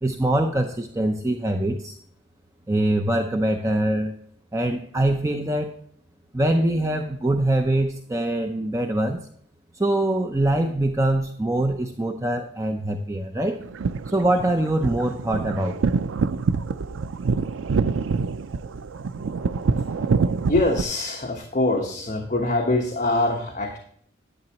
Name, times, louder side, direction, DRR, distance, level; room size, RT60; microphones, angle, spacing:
voice 1, 0.0-2.0 2.7-4.1 4.5-5.8 6.3-9.2 9.7-13.6 14.1-15.9, right 1 dB, 15° right, 4 dB, 0.6 m, -23 dB
sound 1, 13.6-20.8, right 5 dB, 90° right, 0.5 m, -26 dB
voice 2, 20.5-23.8, left 2 dB, 40° left, 1 dB, 1.2 m, -24 dB
10.5 x 9.5 x 3.0 m, 0.63 s
head